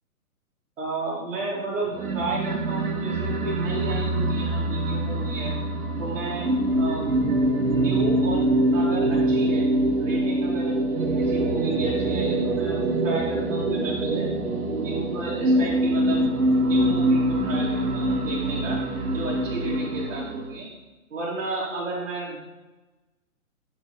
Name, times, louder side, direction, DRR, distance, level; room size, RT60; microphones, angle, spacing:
voice 1, 0.8-5.6 6.0-7.1 7.7-9.7 10.0-14.3 14.7-16.3 16.6-18.8 19.1-20.7 21.1-22.4, right 3 dB, 60° right, -9 dB, 2.8 m, -32 dB
sound 1, 1.9-20.6, right 1 dB, 75° right, 1.5 m, -24 dB
11.5 x 5.9 x 3.2 m, 1.1 s
hypercardioid pair, 170°, 43 cm